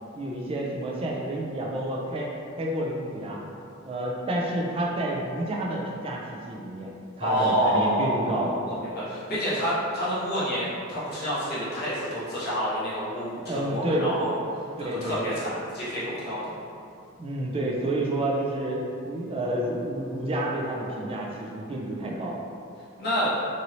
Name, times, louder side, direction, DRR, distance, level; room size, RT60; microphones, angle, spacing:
voice 1, 0.2-2.3 2.6-3.4 3.8-6.9 7.2-8.5 13.2-14.1 14.9-15.2 17.2-22.4, right 1 dB, 30° right, -2 dB, 0.4 m, -29 dB
voice 2, 7.2-14.4 14.8-16.5 23.0-23.3, equal, 50° left, -10 dB, 1.1 m, -28 dB
2.7 x 2.6 x 2.9 m, 2.5 s
head